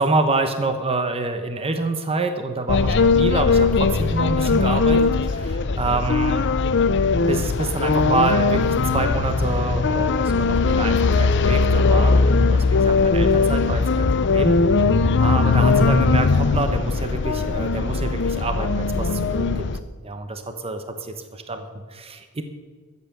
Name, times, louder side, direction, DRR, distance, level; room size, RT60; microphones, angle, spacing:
voice 1, 0.0-6.4 7.3-14.6 15.2-19.7 20.0-21.6 21.9-22.4, right 3 dB, 25° right, 7 dB, 1.0 m, -26 dB
sound 1, 2.7-19.8, left 4 dB, 55° left, 0.6 m, -19 dB
13.5 x 8.2 x 6.9 m, 1.5 s
head